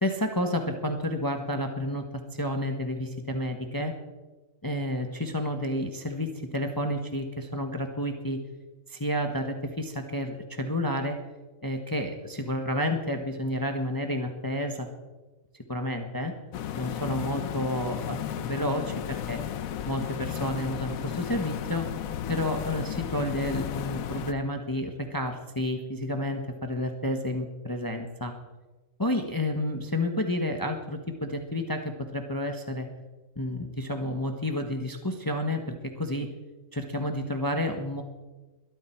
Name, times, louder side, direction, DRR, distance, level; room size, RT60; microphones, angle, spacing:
voice 1, 0.0-2.0 2.4-3.9 4.6-8.4 8.9-11.2 11.6-14.9 15.7-16.3 16.7-19.4 19.8-21.9 22.3-28.3 29.0-32.9 33.4-36.3 36.7-38.0, left 1 dB, 15° left, 4 dB, 1.2 m, -30 dB
sound 1, 16.5-24.3, left 10 dB, 80° left, 1.2 m, -34 dB
22.5 x 13.0 x 4.5 m, 1.2 s
omnidirectional pair, 1.4 m